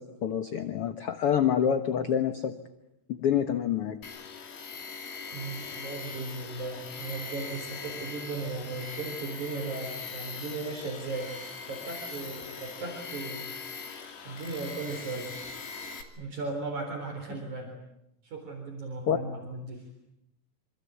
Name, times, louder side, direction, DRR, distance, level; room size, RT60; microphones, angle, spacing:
voice 1, 0.0-2.5 3.1-4.0 19.1-19.2, left 8 dB, 60° left, 8 dB, 1.7 m, -27 dB
Tools, 4.0-16.0, left 5 dB, 75° left, 4.4 m, -41 dB
voice 2, 5.3-11.3 11.6-13.9 14.3-15.3 16.2-17.7 18.2-19.8, right 3 dB, 55° right, 3 dB, 5.3 m, -37 dB
26.5 x 26.0 x 8.4 m, 0.84 s
omnidirectional pair, 4.0 m